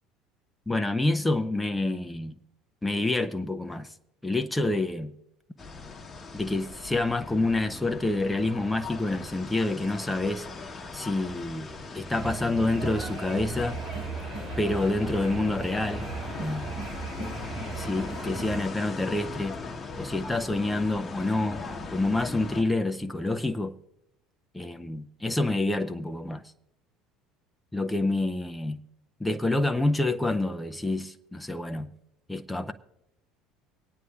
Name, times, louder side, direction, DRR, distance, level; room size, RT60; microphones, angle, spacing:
voice 1, 0.7-2.3 2.8-3.9 4.2-5.1 6.3-10.5 10.9-13.8 14.6-16.1 16.4-16.7 17.8-19.6 20.0-21.6 21.9-23.7 24.5-26.4 27.7-28.8 29.2-31.9 32.3-32.7, left 2 dB, 10° left, 0.6 m, -28 dB
sound 1, 5.6-22.6, left 3 dB, 30° left, 1.0 m, -40 dB
sound 2, 12.1-18.6, right 3 dB, 70° right, 4.9 m, -37 dB
24.5 x 9.2 x 2.4 m
hypercardioid pair, 65°, 0 cm